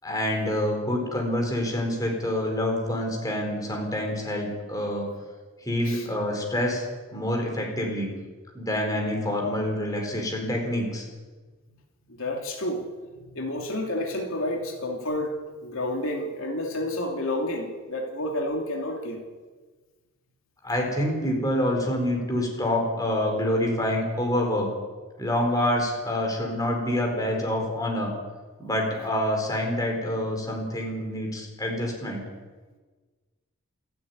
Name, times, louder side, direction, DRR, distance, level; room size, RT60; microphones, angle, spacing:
voice 1, 0.0-5.1 5.6-6.8 7.1-8.1 8.5-11.0 20.6-24.7 25.2-28.1 28.6-32.2, left 1 dB, 15° left, 1 dB, 4.7 m, -27 dB
voice 2, 12.1-12.9 13.3-19.2, left 1 dB, 65° left, 1 dB, 2.8 m, -30 dB
28.0 x 9.4 x 9.7 m, 1.4 s
head